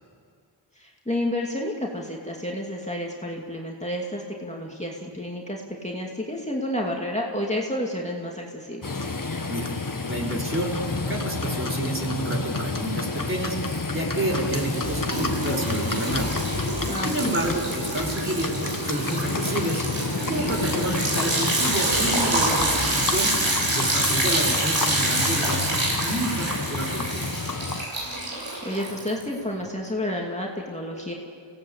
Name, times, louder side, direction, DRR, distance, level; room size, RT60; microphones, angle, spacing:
voice 1, 0.8-9.0 16.9-17.3 28.2-31.1, left 1 dB, 15° left, -2 dB, 2.6 m, -30 dB
Livestock farm animals working animals, 8.8-27.8, left 3 dB, 45° left, 1.6 m, -30 dB
voice 2, 10.1-16.4 17.0-19.9 20.3-23.3 23.7-27.5, right 1 dB, 25° right, -2 dB, 4.1 m, -29 dB
Liquid, 12.3-12.8 13.2-29.4, right 1 dB, 85° right, 7.4 m, -27 dB
29.5 x 17.0 x 8.4 m, 2.3 s
wide cardioid pair, 70°, 45 cm